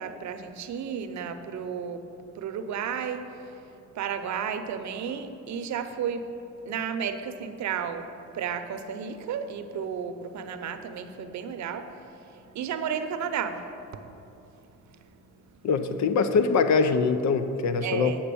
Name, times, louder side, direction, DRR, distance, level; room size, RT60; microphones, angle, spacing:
voice 1, 0.0-13.6 13.9-15.6 17.8-18.2, right 7 dB, 70° right, 8 dB, 0.8 m, -34 dB
voice 2, 15.6-18.2, left 5 dB, 65° left, 10 dB, 0.7 m, -23 dB
8.5 x 5.7 x 6.9 m, 2.9 s
cardioid pair, 90°, 30 cm